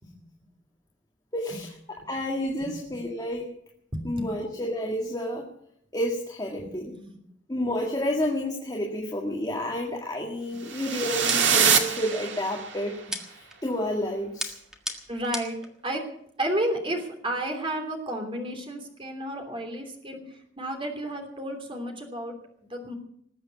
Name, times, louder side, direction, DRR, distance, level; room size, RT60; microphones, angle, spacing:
voice 1, 1.3-3.5 4.0-5.5 5.9-6.9 7.5-13.0 13.3-14.5, left 1 dB, 20° left, -1 dB, 1.9 m, -30 dB
voice 2, 2.6-3.0 3.9-4.5 6.6-7.2 15.1-15.6 15.8-16.0 16.4-23.0, right 1 dB, 30° right, 3 dB, 3.1 m, -32 dB
sound 1, 10.7-12.9, right 7 dB, 75° right, 1.9 m, -24 dB
sound 2, 11.3-12.2 13.1-13.6 14.4-15.7, equal, 5° right, 1.7 m, -35 dB
20.0 x 8.0 x 8.4 m, 0.70 s
head